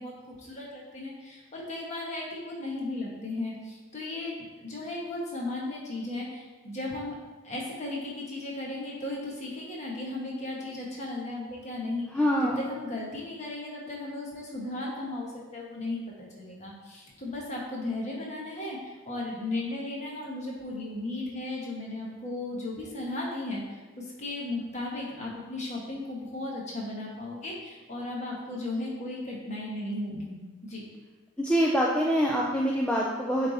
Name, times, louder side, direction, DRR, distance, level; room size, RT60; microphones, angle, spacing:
voice 1, 0.0-4.3 4.6-7.1 7.4-30.8, left 2 dB, 35° left, -3 dB, 1.3 m, -36 dB
voice 2, 12.1-12.7 31.4-33.5, equal, 5° left, -3 dB, 0.4 m, -25 dB
7.7 x 3.4 x 4.1 m, 1.3 s
head